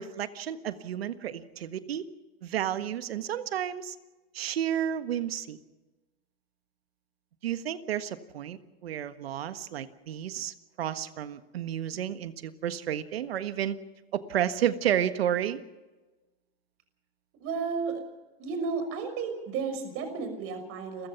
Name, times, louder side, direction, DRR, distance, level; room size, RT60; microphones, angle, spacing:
voice 1, 0.0-2.1 2.4-3.9 4.3-5.6 7.4-13.8 14.1-15.6, right 10 dB, 80° right, 11 dB, 1.6 m, -31 dB
voice 2, 17.4-18.0 18.4-21.1, right 5 dB, 45° right, 8 dB, 6.1 m, -33 dB
29.5 x 15.5 x 5.9 m, 1.2 s
hypercardioid pair, 105°, 30 cm